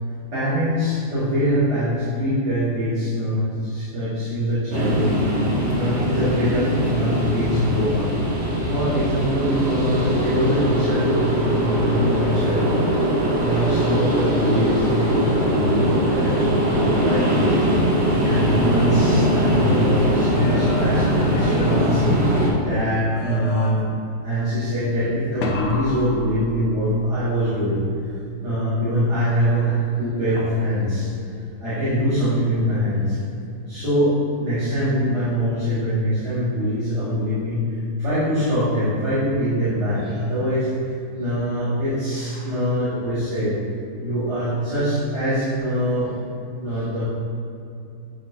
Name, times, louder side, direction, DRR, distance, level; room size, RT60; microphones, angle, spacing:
voice 1, 0.3-5.1 5.4-8.1 8.7-12.8 13.4-17.6 18.2-23.8 24.2-27.8 28.4-31.1 31.6-33.2 33.7-37.6 38.0-40.7 41.2-43.5 44.0-46.1 46.6-47.0, equal, 75° right, -14 dB, 2.3 m, -23 dB
sound 1, 4.7-22.5, equal, 45° right, 1.3 m, -21 dB
sound 2, 17.9-19.8 20.2-22.7 23.1-24.1 25.4-27.0 30.4-31.0, left 2 dB, 90° left, 1.4 m, -34 dB
9.2 x 4.1 x 2.7 m, 2.6 s
omnidirectional pair, 1.8 m